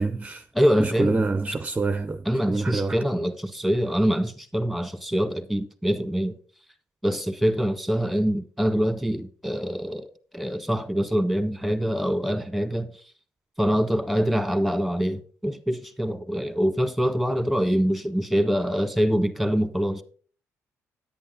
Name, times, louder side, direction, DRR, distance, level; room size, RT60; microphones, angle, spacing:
voice 1, 0.0-0.5 0.8-3.0, right 3 dB, 20° right, 0.7 m, -26 dB
voice 2, 0.5-1.1 2.2-6.4 7.0-12.9 13.6-20.0, equal, ahead, 1.6 m, -24 dB
10.0 x 9.1 x 3.9 m
cardioid pair, 80°, 6 cm